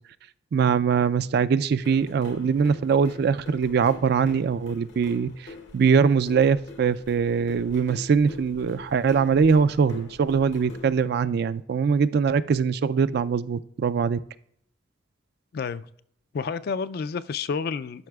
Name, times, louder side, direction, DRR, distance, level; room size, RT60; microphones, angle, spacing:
voice 1, 0.5-14.2, right 6 dB, 60° right, 0.3 m, -22 dB
sound 1, 1.8-11.0, left 3 dB, 75° left, 0.9 m, -45 dB
voice 2, 15.5-15.9 16.3-18.1, left 5 dB, 55° left, 0.3 m, -30 dB
12.0 x 5.6 x 2.3 m
head